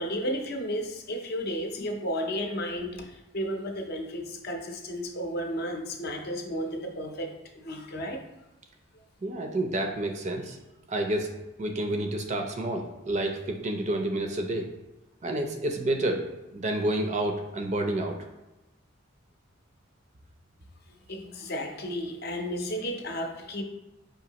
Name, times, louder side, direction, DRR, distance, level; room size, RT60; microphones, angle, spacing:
voice 1, 0.0-8.2 21.1-23.6, equal, 50° left, 2 dB, 0.6 m, -33 dB
voice 2, 9.2-10.6 10.9-14.7 15.2-16.3 16.5-18.2, right 1 dB, 35° right, 3 dB, 0.4 m, -29 dB
5.0 x 2.6 x 2.8 m, 1.0 s
head